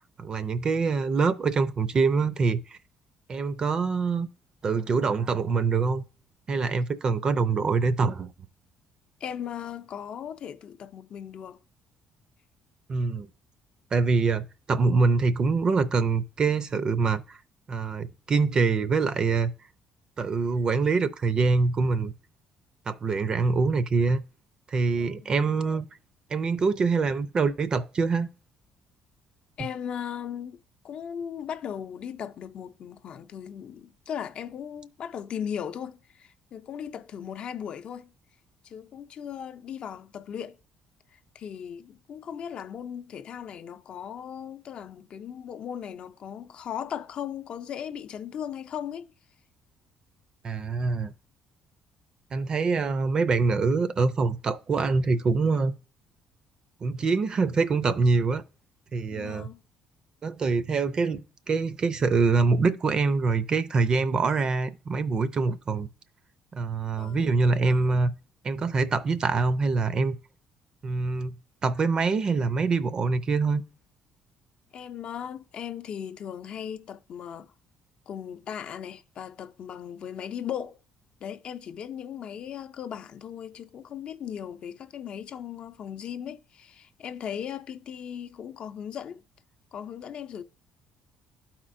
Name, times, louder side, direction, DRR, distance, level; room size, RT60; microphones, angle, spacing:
voice 1, 0.2-2.8 3.3-4.3 4.6-6.0 6.5-8.3 12.9-13.3 13.9-17.4 17.7-19.5 20.2-22.1 22.9-24.2 24.7-25.9 26.3-28.3 50.4-51.1 52.3-55.7 56.8-58.4 58.9-59.5 60.2-61.2 61.5-65.9 66.5-68.1 68.4-70.2 70.8-71.4 71.6-73.6, right 4 dB, 40° right, 0.5 m, -24 dB
voice 2, 9.2-11.6 24.9-25.3 29.6-30.6 30.8-38.1 38.6-40.6 41.1-49.1 59.1-59.6 67.0-67.3 74.7-77.5 78.1-80.8 81.2-89.2 89.7-90.4, left 8 dB, 55° left, 0.5 m, -37 dB
12.0 x 4.3 x 2.5 m
cardioid pair, 85°, 2 cm